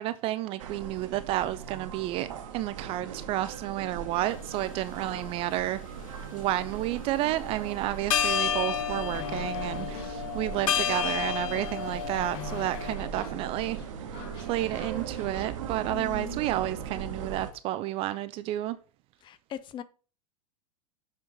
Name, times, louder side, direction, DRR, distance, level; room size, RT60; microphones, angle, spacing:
voice 1, 0.0-2.3 2.5-5.8 6.3-13.8 14.1-18.8, right 14 dB, 30° right, 0.4 m, -31 dB
sound 1, 0.6-17.5, right 7 dB, 55° right, 1.2 m, -39 dB
sound 2, 4.4-4.5 5.2-6.2 7.7-7.8 8.1-13.0, left 9 dB, 65° left, 0.7 m, -31 dB
sound 3, 9.1-15.5, left 6 dB, 45° left, 2.0 m, -45 dB
voice 2, 15.9-16.4 19.2-19.8, left 10 dB, 25° left, 0.6 m, -40 dB
7.3 x 5.1 x 4.0 m
figure-of-eight pair, 90°, 19 cm